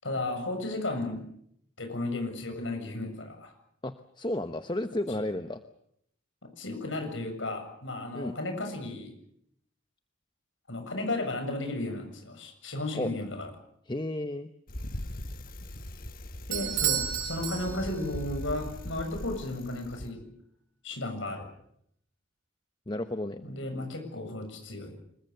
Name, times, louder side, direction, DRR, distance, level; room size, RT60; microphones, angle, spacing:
voice 1, 0.0-1.2 1.8-3.5 5.1-5.2 6.6-9.1 10.7-13.5 16.5-20.2 20.8-21.5 23.4-25.0, left 2 dB, 90° left, 5 dB, 7.4 m, -34 dB
voice 2, 3.8-5.6 8.1-8.3 12.9-13.1 13.9-14.5 22.9-23.4, left 1 dB, 25° left, 10 dB, 0.9 m, -32 dB
Bicycle, 14.7-20.1, left 1 dB, 50° left, 1.5 m, -40 dB
Bell / Doorbell, 16.5-18.2, right 11 dB, 85° right, 4.6 m, -31 dB
27.0 x 22.5 x 6.9 m, 0.72 s
head